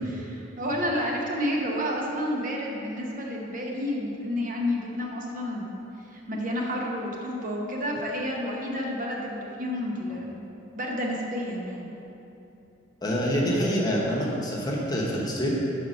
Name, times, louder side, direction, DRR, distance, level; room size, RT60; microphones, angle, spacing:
voice 1, 0.0-5.8 6.1-10.4 10.7-11.9, equal, 45° right, -2 dB, 0.8 m, -30 dB
voice 2, 13.0-15.5, equal, 20° left, -4 dB, 0.9 m, -26 dB
5.3 x 4.8 x 6.1 m, 2.9 s
head